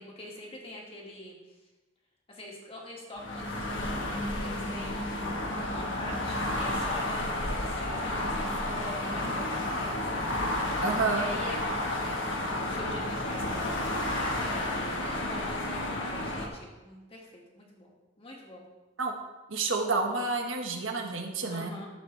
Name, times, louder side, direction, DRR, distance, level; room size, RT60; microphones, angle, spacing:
voice 1, 0.0-1.4 2.3-10.1 11.1-18.7 21.5-21.9, left 1 dB, 30° left, -2 dB, 2.0 m, -44 dB
sound 1, 3.2-16.5, left 1 dB, 70° left, 1.5 m, -31 dB
voice 2, 10.8-11.3 19.0-19.1 19.5-21.7, right 3 dB, 80° right, 2 dB, 1.4 m, -29 dB
12.5 x 7.4 x 3.4 m, 1.2 s
head